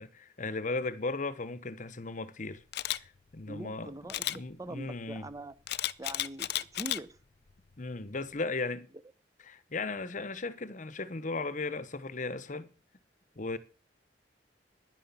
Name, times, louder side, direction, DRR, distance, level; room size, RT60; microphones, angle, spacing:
voice 1, 0.0-2.6 2.9-4.0 4.3-5.3 7.8-8.9 9.4-12.7 13.3-13.6, left 3 dB, 45° left, 1.0 m, -36 dB
Camera, 2.7-3.0 4.1-4.4 5.7-7.0 7.5-7.7, left 13 dB, 60° left, 0.6 m, -33 dB
voice 2, 3.5-4.2 4.6-5.5 6.0-7.2, right 1 dB, 20° right, 0.8 m, -42 dB
10.5 x 10.0 x 7.0 m
head